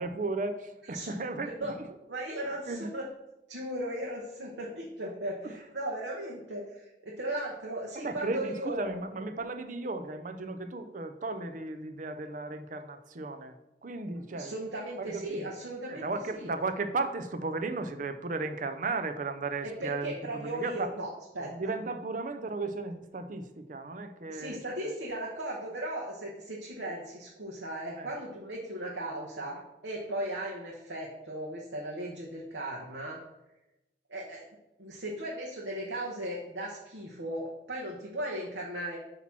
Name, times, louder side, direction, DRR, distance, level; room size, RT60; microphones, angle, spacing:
voice 1, 0.0-1.5 2.4-2.9 5.4-5.5 7.9-13.5 13.8-14.5 15.0-15.4 15.9-20.9 21.4-24.9 28.0-28.1, right 3 dB, 45° right, 8 dB, 0.6 m, -35 dB
voice 2, 2.1-3.0 3.5-8.8 14.3-16.0 16.3-16.5 19.6-21.1 21.3-21.7 24.3-33.2 34.1-34.4 34.8-39.0, right 1 dB, 85° right, -2 dB, 1.1 m, -37 dB
8.1 x 3.0 x 6.0 m, 0.95 s
head